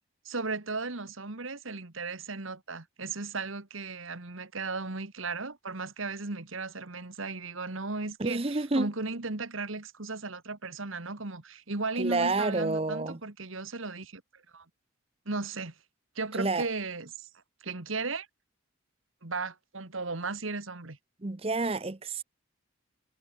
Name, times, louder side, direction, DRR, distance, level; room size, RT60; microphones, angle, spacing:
voice 1, 0.3-14.2 14.5-14.7 15.3-15.7 16.2-17.3 17.6-18.3 19.2-21.0, right 3 dB, 75° right, 1.9 m, -36 dB
voice 2, 8.2-8.9 12.0-13.2 16.3-16.7 21.2-22.2, right 3 dB, 30° right, 0.7 m, -29 dB
head